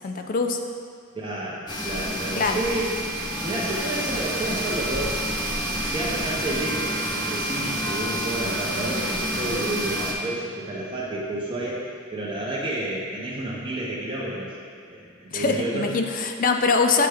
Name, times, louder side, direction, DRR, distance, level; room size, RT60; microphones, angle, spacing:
voice 1, 0.0-0.6 2.3-2.6 15.3-17.1, left 4 dB, 40° left, 5 dB, 0.4 m, -23 dB
voice 2, 1.1-3.0 3.4-5.2 5.9-11.9 12.1-14.6 14.8-15.9, right 1 dB, 25° right, -6 dB, 0.6 m, -30 dB
sound 1, 1.7-10.1, right 1 dB, 20° left, 0.8 m, -28 dB
7.6 x 4.5 x 3.4 m, 2.3 s
head